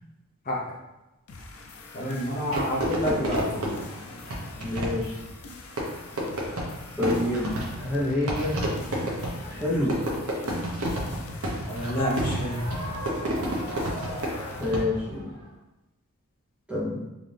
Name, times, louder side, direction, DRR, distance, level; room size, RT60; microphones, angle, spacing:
sound 1, 1.3-14.8, left 3 dB, 75° left, 0.5 m, -45 dB
voice 1, 1.9-3.9 11.7-12.7, equal, 40° left, -4 dB, 0.7 m, -29 dB
Fireworks, 2.5-15.2, right 1 dB, 75° right, 1.0 m, -31 dB
voice 2, 4.6-5.2 7.0-8.6 9.4-10.0 14.6-15.3 16.7-17.0, left 2 dB, 5° right, -7 dB, 1.0 m, -27 dB
3.9 x 2.7 x 3.3 m, 1.0 s
head